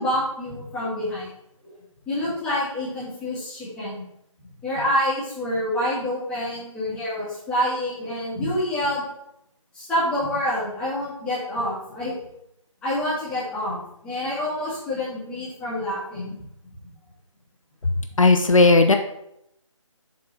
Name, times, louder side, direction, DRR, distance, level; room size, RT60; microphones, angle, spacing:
voice 1, 0.0-1.3 1.6-1.7 2.1-4.0 4.6-9.1 9.7-12.2 12.8-16.5, left 1 dB, 5° left, -10 dB, 1.8 m, -27 dB
voice 2, 18.2-18.9, left 3 dB, 75° left, 5 dB, 0.7 m, -15 dB
7.2 x 3.8 x 4.5 m, 0.77 s
figure-of-eight pair, 155°, 17 cm